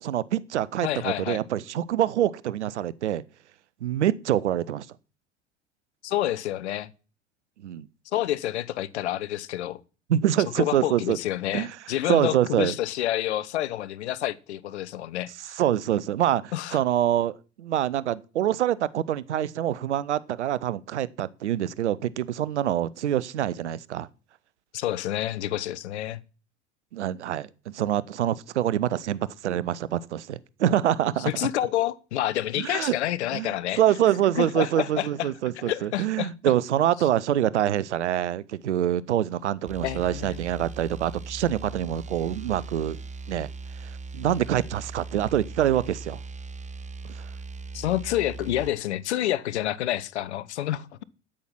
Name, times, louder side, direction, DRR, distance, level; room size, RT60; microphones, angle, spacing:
voice 1, 0.0-3.2 3.8-4.9 7.6-7.9 10.1-11.2 11.5-11.7 12.1-12.7 15.5-24.1 26.9-31.3 32.6-33.0 33.3-43.0 43.3-43.5 43.8-46.2 47.1-47.3, right 11 dB, 80° right, 0.7 m, -25 dB
voice 2, 0.8-1.4 6.0-6.9 8.1-9.8 10.5-15.3 16.5-16.8 24.7-26.2 31.3-33.8 34.4-35.3 35.6-36.3 39.8-40.4 47.7-51.0, left 13 dB, 75° left, 0.9 m, -28 dB
sound 1, 39.7-48.8, right 3 dB, 20° right, 1.2 m, -39 dB
8.7 x 8.7 x 5.9 m
figure-of-eight pair, 70°, 34 cm